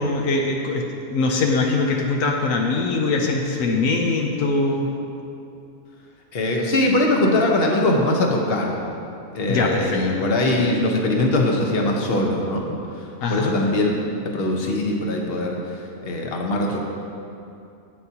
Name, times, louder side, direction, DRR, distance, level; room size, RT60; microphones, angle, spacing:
voice 1, 0.0-4.9 9.5-10.2 13.2-13.6, left 3 dB, 80° left, 1 dB, 1.1 m, -22 dB
voice 2, 6.3-8.8 9.3-13.9 14.2-16.8, left 1 dB, 50° left, 0 dB, 1.2 m, -22 dB
12.0 x 8.4 x 2.9 m, 2.7 s
omnidirectional pair, 1.4 m